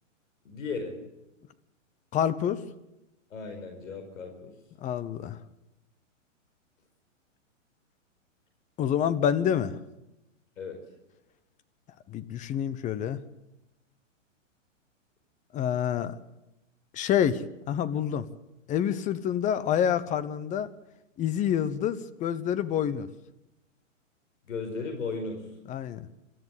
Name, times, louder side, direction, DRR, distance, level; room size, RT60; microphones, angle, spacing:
voice 1, 0.4-1.0 3.3-4.5 10.6-10.8 24.5-25.4, left 4 dB, 80° left, 5 dB, 4.9 m, -35 dB
voice 2, 2.1-2.6 4.8-5.4 8.8-9.8 12.1-13.2 15.5-16.2 16.9-17.4 17.7-18.3 18.7-20.7 21.2-23.1 25.7-26.0, left 9 dB, 20° left, 14 dB, 1.0 m, -27 dB
26.0 x 13.5 x 8.3 m, 0.96 s
hypercardioid pair, 140°, 38 cm